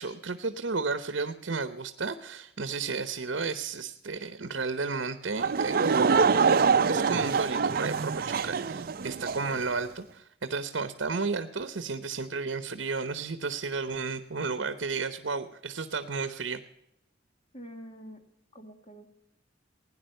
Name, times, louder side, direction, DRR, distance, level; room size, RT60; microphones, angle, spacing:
voice 1, 0.0-6.1 6.4-16.6, right 4 dB, 70° right, 11 dB, 0.8 m, -33 dB
Laughter / Crowd, 5.4-9.6, right 5 dB, 50° right, 0.5 m, -25 dB
voice 2, 17.5-18.2 18.5-19.1, equal, 30° left, 5 dB, 2.1 m, -46 dB
17.0 x 9.9 x 6.5 m, 0.84 s
head